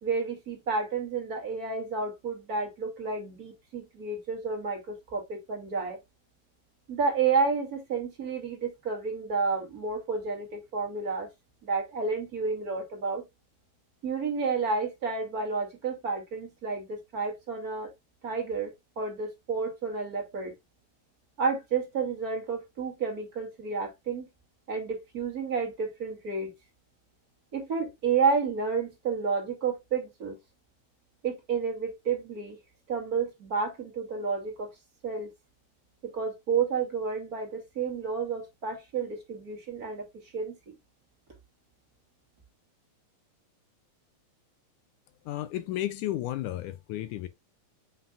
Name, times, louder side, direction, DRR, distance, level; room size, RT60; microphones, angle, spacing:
voice 1, 0.0-6.0 6.9-11.3 11.6-13.2 14.0-17.9 18.2-20.5 21.4-24.3 24.7-26.5 27.5-30.4 31.2-32.6 32.9-34.7 35.0-35.3 36.0-40.1 40.3-40.5, right 5 dB, 30° right, 2.2 m, -30 dB
voice 2, 45.3-47.3, left 14 dB, 80° left, 1.9 m, -33 dB
7.3 x 5.8 x 2.4 m
omnidirectional pair, 4.0 m